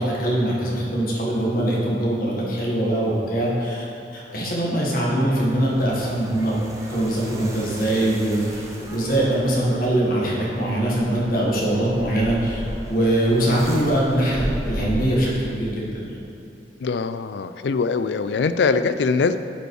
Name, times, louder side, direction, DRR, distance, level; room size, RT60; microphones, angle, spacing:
voice 1, 0.0-3.8 4.1-6.5 6.9-16.2, right 1 dB, 50° left, -4 dB, 1.6 m, -22 dB
sound 1, 5.3-15.7, equal, 15° right, 0.9 m, -36 dB
voice 2, 16.8-19.4, left 4 dB, 70° left, 11 dB, 0.4 m, -22 dB
8.8 x 5.2 x 4.8 m, 2.7 s
head